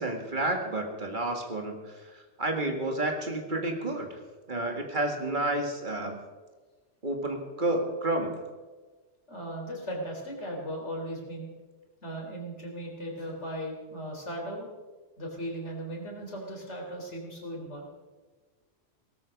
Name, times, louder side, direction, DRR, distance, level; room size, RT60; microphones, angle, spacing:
voice 1, 0.0-4.2 4.5-6.2 7.0-8.3, right 2 dB, 45° right, 3 dB, 2.2 m, -30 dB
voice 2, 9.3-11.5 12.0-14.7 15.2-17.9, equal, 80° left, 0 dB, 4.0 m, -37 dB
18.0 x 13.5 x 5.3 m, 1.3 s
omnidirectional pair, 1.2 m